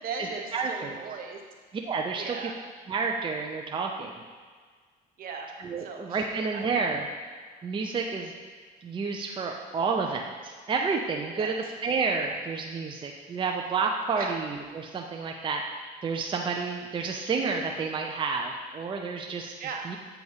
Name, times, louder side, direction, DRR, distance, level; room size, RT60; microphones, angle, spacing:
voice 1, 0.0-1.4 2.2-2.6 5.2-5.5 5.8-6.9 11.3-11.5 14.1-14.3 19.6-19.9, right 5 dB, 60° right, 2 dB, 0.9 m, -38 dB
voice 2, 0.5-1.0 1.8-2.4 2.9-4.2 5.6-7.0 7.6-8.3 8.8-15.6 16.0-19.5 19.8-20.0, right 4 dB, 30° right, 1 dB, 0.5 m, -30 dB
7.9 x 3.0 x 5.4 m, 1.6 s
cardioid pair, 110°, 17 cm